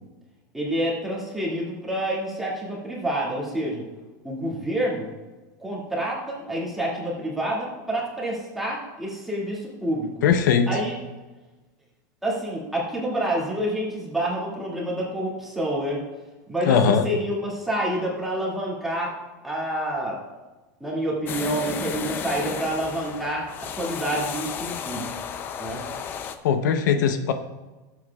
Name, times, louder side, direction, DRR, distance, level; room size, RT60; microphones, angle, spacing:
voice 1, 0.5-3.8 4.2-5.1 5.6-10.1 10.7-10.9 12.2-16.0 16.5-19.1 19.4-20.2 20.8-25.1 25.6-25.9, right 1 dB, ahead, -6 dB, 2.2 m, -28 dB
voice 2, 10.2-10.7 16.6-17.1 26.4-27.3, left 7 dB, 75° left, 8 dB, 0.8 m, -20 dB
sound 1, 21.3-26.3, left 7 dB, 20° left, 0.5 m, -33 dB
18.0 x 7.8 x 2.4 m, 1.2 s
supercardioid pair, 175°, 10 cm